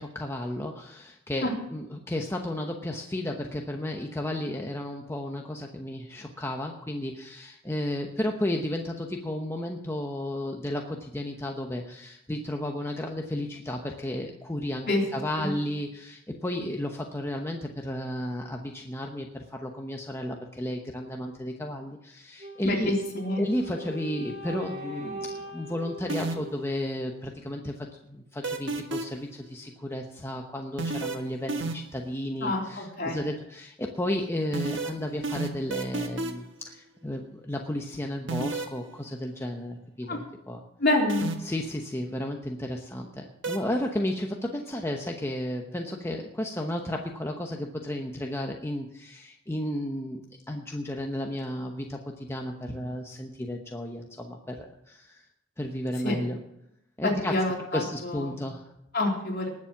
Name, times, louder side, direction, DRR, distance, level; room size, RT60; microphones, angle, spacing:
voice 1, 0.0-22.9 23.4-40.6 41.4-55.2 55.6-56.4 57.0-57.4 57.7-58.7, left 1 dB, 15° left, 1 dB, 1.0 m, -33 dB
Wind instrument woodwind instrument, 22.4-27.5, equal, 40° right, 2.4 m, -40 dB
voice 2, 22.6-23.4 32.4-33.2 40.1-40.2 40.8-41.3 56.0-56.1 57.3-58.3 58.9-59.5, left 2 dB, 55° left, -1 dB, 3.8 m, -27 dB
sound 1, 26.1-26.6 28.4-29.3 30.8-32.0 34.5-36.5 38.3-38.8 41.1-41.6 43.4-43.6, right 3 dB, 70° right, 1.5 m, -30 dB
19.5 x 7.2 x 6.0 m, 0.82 s
head